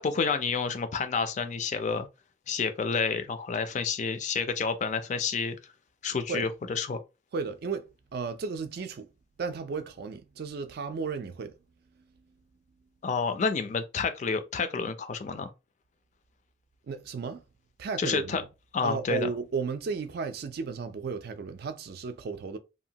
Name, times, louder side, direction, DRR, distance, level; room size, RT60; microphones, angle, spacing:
voice 1, 0.0-2.1 2.5-5.7 6.0-7.0 13.0-15.5 18.0-18.4 18.7-19.3, left 5 dB, 35° left, 0.3 m, -29 dB
voice 2, 7.3-7.9 8.1-9.1 9.4-11.5 16.9-17.4 17.8-18.5 18.8-22.6, right 5 dB, 50° right, 0.3 m, -34 dB
2.8 x 2.1 x 2.7 m
head